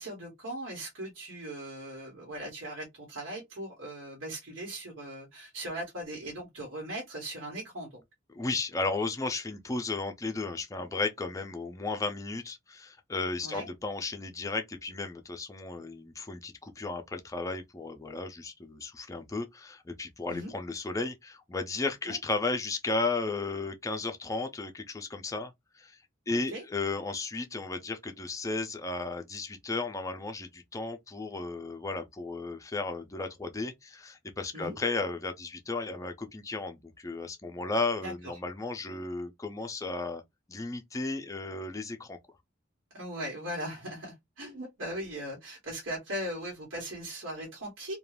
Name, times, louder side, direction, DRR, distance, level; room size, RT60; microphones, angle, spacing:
voice 1, 0.0-8.0 13.4-13.7 20.3-20.5 22.1-22.2 26.3-26.6 34.5-34.8 38.0-38.3 42.9-48.0, right 1 dB, 90° right, 1.0 m, -39 dB
voice 2, 8.3-26.0 26.3-40.2 40.5-42.2, left 3 dB, 15° left, 0.4 m, -34 dB
2.4 x 2.2 x 3.2 m
head